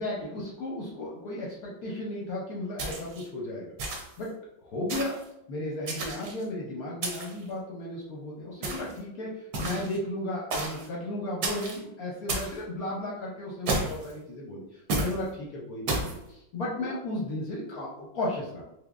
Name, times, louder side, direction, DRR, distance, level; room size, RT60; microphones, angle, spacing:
voice 1, 0.0-3.7 4.2-4.3 4.6-5.1 5.5-18.6, left 1 dB, 65° left, -4 dB, 0.9 m, -34 dB
sound 1, 2.8-3.3 3.8-4.2 4.9-5.2 5.9-6.4 7.0-7.4 8.6-9.0 9.5-10.0 10.5-10.9 11.4-11.8 12.3-12.6 13.7-14.1 14.9-15.2 15.9-16.2, right 2 dB, 60° right, 1.0 m, -31 dB
3.8 x 3.1 x 2.4 m, 0.81 s
omnidirectional pair, 2.2 m